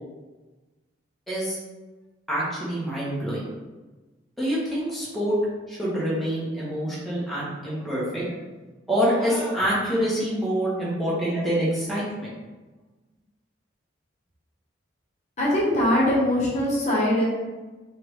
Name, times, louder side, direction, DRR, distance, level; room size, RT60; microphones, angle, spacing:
voice 1, 1.3-1.6 2.3-3.5 4.4-5.4 5.7-8.4 8.9-12.3, equal, ahead, -8 dB, 1.0 m, -26 dB
voice 2, 15.4-17.3, left 1 dB, 35° left, -6 dB, 1.1 m, -22 dB
3.4 x 3.1 x 3.1 m, 1.2 s
head